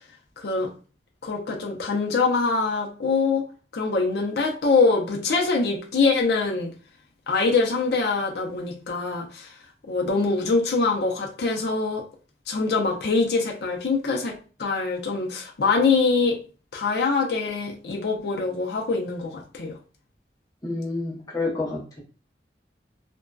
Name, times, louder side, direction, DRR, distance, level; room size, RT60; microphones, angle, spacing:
voice 1, 0.4-0.7 1.2-3.4 3.7-6.7 7.3-9.5 9.9-12.0 12.5-16.4 16.7-19.8, left 4 dB, 65° left, 0.5 m, -24 dB
voice 2, 20.6-22.0, left 3 dB, 20° left, 0.7 m, -29 dB
2.5 x 2.1 x 2.2 m
head